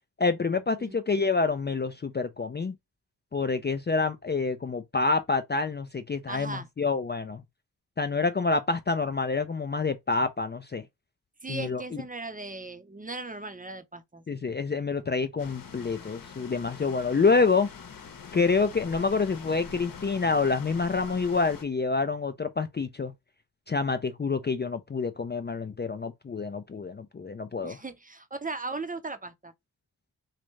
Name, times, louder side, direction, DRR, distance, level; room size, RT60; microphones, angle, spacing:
voice 1, 0.2-2.8 3.3-7.4 8.0-10.8 11.5-11.8 14.3-17.7 18.3-23.1 23.7-27.8, left 4 dB, 25° left, 0.5 m, -27 dB
voice 2, 6.3-6.7 11.4-14.2 27.6-29.5, right 3 dB, 20° right, 0.7 m, -37 dB
sound 1, 15.4-21.6, left 6 dB, 55° left, 0.9 m, -44 dB
3.3 x 2.5 x 3.2 m
cardioid pair, 45°, 42 cm